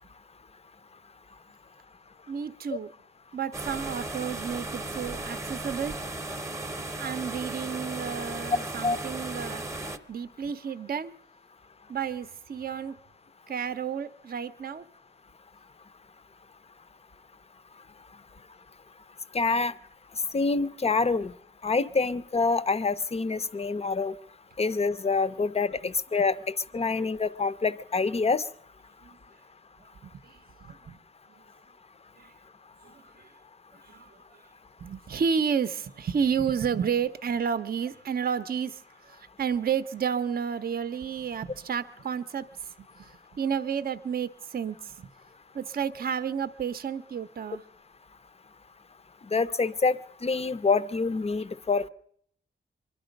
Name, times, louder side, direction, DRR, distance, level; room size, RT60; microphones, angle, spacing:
voice 1, 2.3-2.9 3.3-6.0 7.0-9.6 10.1-11.1 11.9-13.0 13.5-14.8 29.0-29.2 29.8-31.0 32.2-32.3 32.8-33.3 33.7-34.4 34.8-45.1 45.5-47.6, right 7 dB, 50° right, 0.6 m, -31 dB
sound 1, 3.5-10.0, right 2 dB, 15° right, 0.7 m, -36 dB
voice 2, 19.3-19.7 20.3-21.3 21.6-24.2 24.6-28.4 49.3-51.9, left 4 dB, 30° left, 0.6 m, -26 dB
24.0 x 12.0 x 5.1 m
wide cardioid pair, 160°, 20 cm